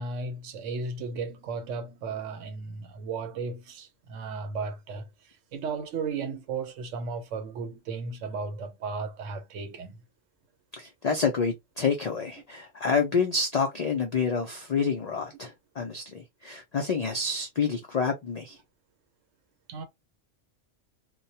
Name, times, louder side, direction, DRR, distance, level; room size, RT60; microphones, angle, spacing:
voice 1, 0.0-5.1 5.5-9.9 19.7-19.8, right 4 dB, 80° right, 1.0 m, -35 dB
voice 2, 10.7-18.6, left 5 dB, 70° left, 0.3 m, -28 dB
2.2 x 2.1 x 2.6 m
omnidirectional pair, 1.3 m